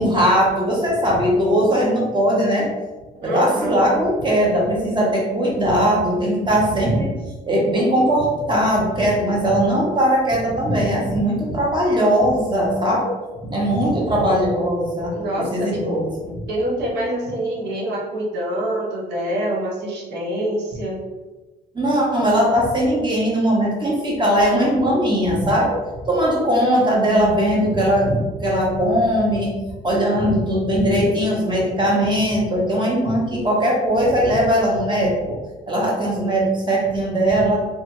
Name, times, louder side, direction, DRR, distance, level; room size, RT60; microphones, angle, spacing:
voice 1, 0.0-2.7 3.2-7.2 7.5-13.1 13.4-16.4 21.7-25.7 26.1-29.6 29.8-35.4 35.7-37.7, equal, 25° right, -3 dB, 0.9 m, -19 dB
voice 2, 3.2-3.8 14.1-14.6 15.1-15.8 16.5-21.0, right 1 dB, 85° right, -2 dB, 0.8 m, -26 dB
2.8 x 2.2 x 2.9 m, 1.2 s
cardioid pair, 95°, 17 cm